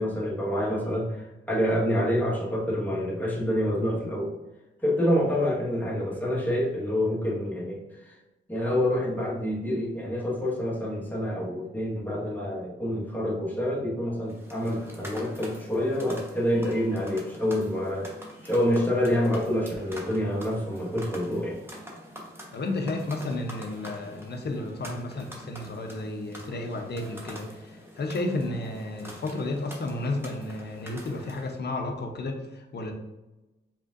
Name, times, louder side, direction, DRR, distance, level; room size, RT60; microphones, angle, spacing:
voice 1, 0.0-4.3 4.8-8.2 8.5-18.1 18.4-21.6, equal, 10° left, -4 dB, 1.3 m, -27 dB
sound 1, 14.2-31.6, equal, 10° right, 1.0 m, -45 dB
voice 2, 22.5-32.9, left 2 dB, 55° left, 4 dB, 0.7 m, -32 dB
4.9 x 3.6 x 2.5 m, 1.0 s
cardioid pair, 85°, 21 cm